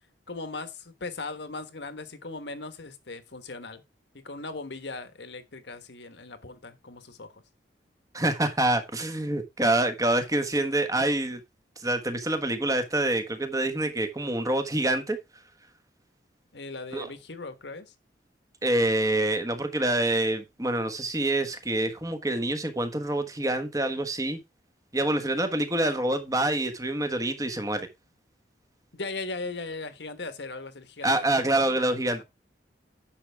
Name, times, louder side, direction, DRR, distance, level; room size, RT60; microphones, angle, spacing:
voice 1, 0.3-3.8 4.1-7.4 16.5-17.9 18.8-19.1 28.9-31.8 32.2-32.3, left 3 dB, 70° left, 1.4 m, -38 dB
voice 2, 8.1-11.4 11.8-15.2 16.9-17.1 18.6-24.4 24.9-27.9 31.0-32.2, right 1 dB, 20° right, 1.3 m, -26 dB
10.0 x 6.5 x 3.5 m
head